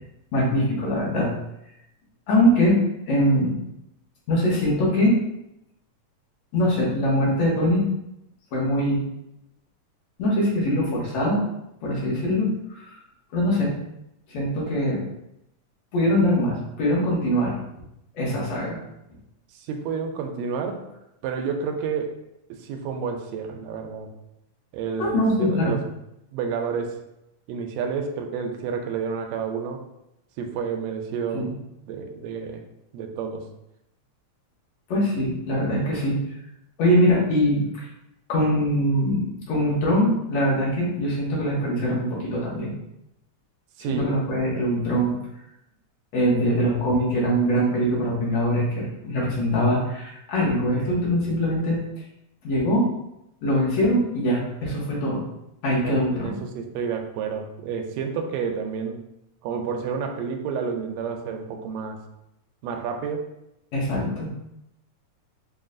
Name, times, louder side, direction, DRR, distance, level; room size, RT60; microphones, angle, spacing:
voice 1, 0.3-1.4 2.3-2.8 3.1-3.5 4.3-5.1 6.5-7.8 8.5-9.0 10.2-11.4 11.8-13.0 13.3-13.7 14.3-15.0 15.9-17.5 18.1-18.8 25.0-25.7 31.3-31.5 34.9-36.2 36.8-37.9 38.3-42.7 44.0-45.2 46.1-51.8 52.4-52.9 53.4-55.2 55.6-56.3 63.7-64.3, equal, 70° left, -5 dB, 2.2 m, -22 dB
voice 2, 19.5-20.8 21.2-22.2 22.5-24.1 24.7-25.9 26.3-27.0 27.5-29.8 30.4-31.5 31.9-32.6 32.9-33.5 43.8-44.1 55.8-59.1 59.4-62.0 62.6-63.3, right 6 dB, 80° right, 4 dB, 1.6 m, -30 dB
6.0 x 2.2 x 2.5 m, 0.83 s
omnidirectional pair, 3.3 m